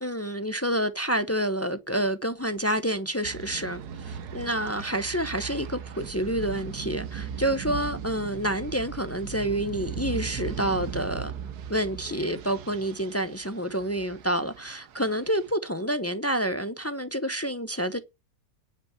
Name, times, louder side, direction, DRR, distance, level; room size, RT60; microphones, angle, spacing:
voice 1, 0.0-11.3 11.7-18.0, right 1 dB, 25° left, 0.3 m, -28 dB
sound 1, 3.2-15.5, right 8 dB, 70° right, 1.4 m, -38 dB
9.9 x 6.1 x 7.3 m
omnidirectional pair, 1.8 m